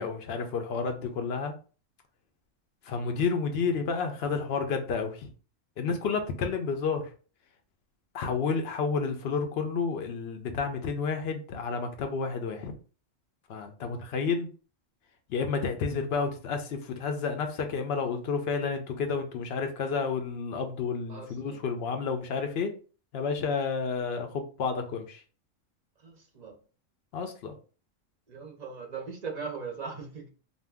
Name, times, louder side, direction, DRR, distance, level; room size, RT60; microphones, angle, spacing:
voice 1, 0.0-1.5 2.9-5.3 5.8-7.1 8.1-12.7 13.5-14.5 15.3-22.7 23.1-25.2 27.1-27.5, left 5 dB, 65° left, 6 dB, 0.7 m, -30 dB
voice 2, 21.1-21.6 26.0-26.5 28.3-30.3, right 5 dB, 45° right, 2 dB, 0.6 m, -39 dB
2.6 x 2.2 x 3.4 m, 0.38 s
omnidirectional pair, 1.3 m